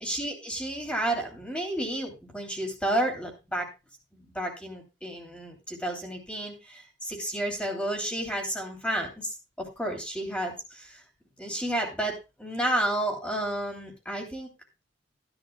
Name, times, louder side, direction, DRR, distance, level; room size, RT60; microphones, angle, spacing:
voice 1, 0.0-3.7 4.1-11.0 11.4-14.5, right 1 dB, 5° left, 3 dB, 2.9 m, -31 dB
15.0 x 11.0 x 2.3 m, 0.28 s
head